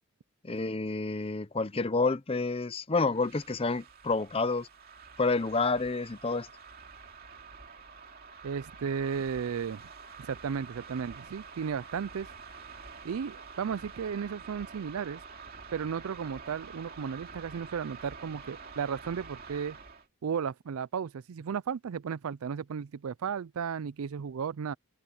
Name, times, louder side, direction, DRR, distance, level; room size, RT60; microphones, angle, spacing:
voice 1, 0.4-4.7 5.2-6.5, left 3 dB, 25° left, 0.6 m, -29 dB
sound 1, 3.0-20.1, right 5 dB, 45° right, 2.6 m, -48 dB
voice 2, 8.4-9.8 10.2-12.3 13.0-15.2 15.7-19.8 20.2-24.7, right 7 dB, 75° right, 0.4 m, -34 dB
open air
head